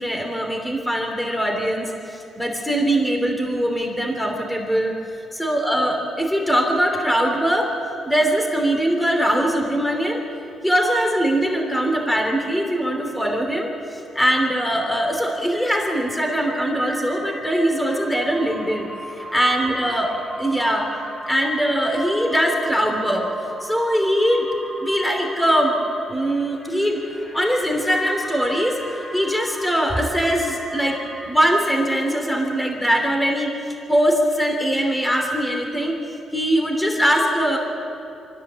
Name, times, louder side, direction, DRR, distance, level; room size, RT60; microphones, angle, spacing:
voice 1, 0.0-5.0 5.3-7.7 8.1-10.2 10.6-18.9 19.2-20.9 21.3-23.3 23.6-24.5 24.8-25.8 26.1-27.0 27.3-28.8 29.1-31.0 31.3-36.0 36.3-37.6, equal, 5° left, 2 dB, 3.0 m, -21 dB
sound 1, 15.5-31.3, right 1 dB, 20° left, 3.8 m, -37 dB
23.5 x 14.5 x 7.6 m, 2.7 s
cardioid pair, 90°, 0 cm